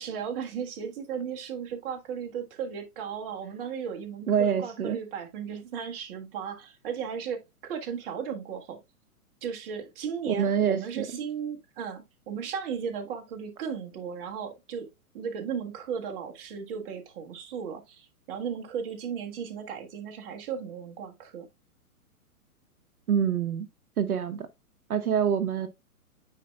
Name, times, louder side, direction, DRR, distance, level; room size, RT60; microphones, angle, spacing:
voice 1, 0.0-8.8 9.4-14.9 15.1-21.5, right 7 dB, 40° right, 1.5 m, -36 dB
voice 2, 4.3-5.0 10.3-11.1 23.1-23.7 24.0-24.5 24.9-25.7, right 8 dB, 70° right, 0.9 m, -26 dB
9.2 x 4.4 x 2.3 m
figure-of-eight pair, 125°, 45 cm